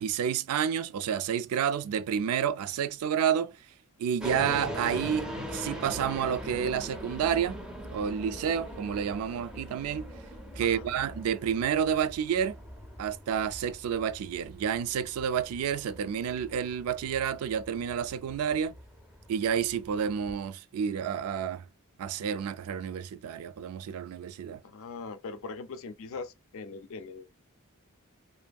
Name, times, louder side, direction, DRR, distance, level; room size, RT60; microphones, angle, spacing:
voice 1, 0.0-3.6 4.0-7.6 7.9-10.1 10.6-12.6 13.0-18.7 19.3-21.6 22.0-24.6, right 8 dB, 75° right, 0.3 m, -30 dB
sound 1, 4.2-20.5, equal, 5° right, 0.4 m, -42 dB
voice 2, 24.6-27.4, left 4 dB, 65° left, 0.4 m, -41 dB
2.6 x 2.6 x 2.2 m
head